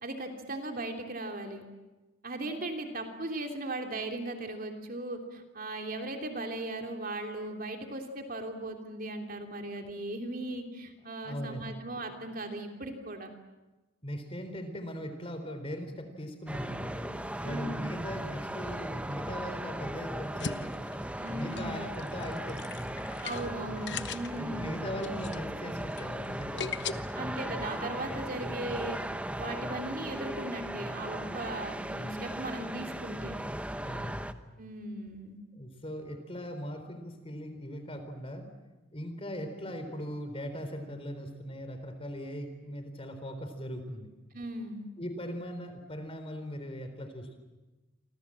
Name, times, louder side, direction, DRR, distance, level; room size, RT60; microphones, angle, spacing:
voice 1, 0.0-1.7 2.2-13.3 17.4-17.9 21.2-21.8 23.2-24.8 27.1-29.0 29.4-33.3 34.6-35.4 44.3-44.9, right 2 dB, 45° right, 4 dB, 3.2 m, -38 dB
voice 2, 11.2-11.6 14.0-17.2 17.4-20.7 21.4-23.1 24.4-27.1 33.8-34.4 35.5-38.5 38.9-44.1 45.0-47.4, equal, 30° left, 8 dB, 3.9 m, -39 dB
sound 1, 16.5-34.3, right 1 dB, 5° right, 1.0 m, -37 dB
sound 2, 20.2-26.9, left 6 dB, 60° left, 1.1 m, -40 dB
29.0 x 25.0 x 7.7 m, 1.1 s
head